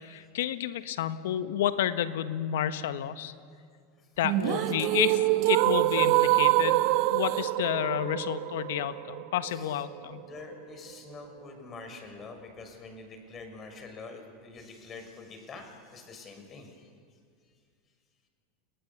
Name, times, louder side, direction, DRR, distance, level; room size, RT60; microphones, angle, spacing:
voice 1, 0.0-3.3 4.2-5.2 5.5-6.8 7.1-10.2, left 11 dB, 75° left, 11 dB, 1.3 m, -30 dB
sound 1, 4.2-10.2, right 18 dB, 60° right, 0.6 m, -26 dB
voice 2, 4.4-5.2 9.4-16.9, left 3 dB, 35° left, 5 dB, 6.2 m, -46 dB
30.0 x 19.5 x 7.2 m, 2.3 s
hypercardioid pair, 95°, 0 cm